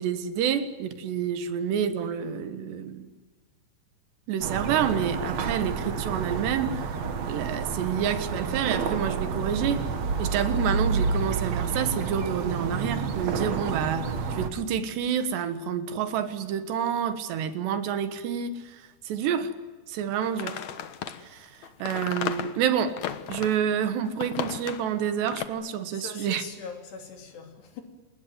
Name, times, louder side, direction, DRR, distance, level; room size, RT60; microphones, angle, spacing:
voice 1, 0.0-3.1 4.3-6.9 7.3-9.9 10.2-19.5 19.9-20.6 21.2-23.0 23.3-26.4, right 8 dB, 75° right, 3.4 m, -28 dB
sound 1, 4.4-14.5, right 5 dB, 50° right, 2.2 m, -29 dB
sound 2, 20.2-23.6 24.0-24.9 25.2-25.5, left 9 dB, 80° left, 1.6 m, -34 dB
voice 2, 25.9-27.8, left 5 dB, 65° left, 5.2 m, -41 dB
28.0 x 20.0 x 9.4 m
omnidirectional pair, 5.2 m